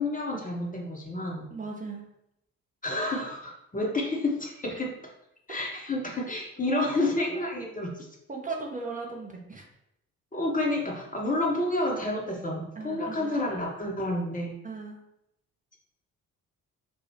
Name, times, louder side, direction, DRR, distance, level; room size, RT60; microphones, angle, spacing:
voice 1, 0.0-1.5 2.8-4.9 5.5-8.1 10.3-14.6, left 2 dB, 20° left, -2 dB, 1.1 m, -30 dB
voice 2, 1.5-2.1 6.7-7.1 8.3-9.7 12.7-13.5 14.6-15.0, right 3 dB, 20° right, -1 dB, 1.0 m, -37 dB
6.2 x 2.4 x 2.9 m, 0.78 s
figure-of-eight pair, 40°, 42 cm